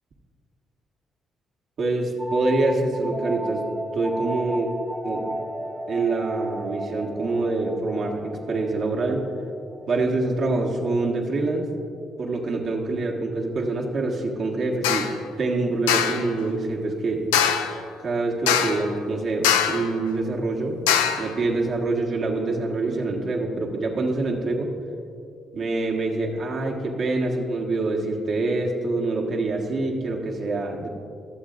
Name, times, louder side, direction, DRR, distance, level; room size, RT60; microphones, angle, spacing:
voice 1, 1.8-3.6 3.9-4.7 5.0-5.4 5.9-9.3 9.9-11.7 12.2-15.1 15.4-17.2 18.0-20.8 21.2-24.7 25.5-30.9, right 2 dB, 60° right, -1 dB, 1.5 m, -25 dB
sound 1, 2.2-11.6, right 1 dB, 5° right, 0.9 m, -35 dB
sound 2, 14.8-15.2 15.9-16.3 17.3-17.8 18.5-18.9 19.4-19.9 20.9-21.3, left 9 dB, 90° left, 0.4 m, -22 dB
22.0 x 7.4 x 2.5 m, 2.5 s
hypercardioid pair, 50°, 0 cm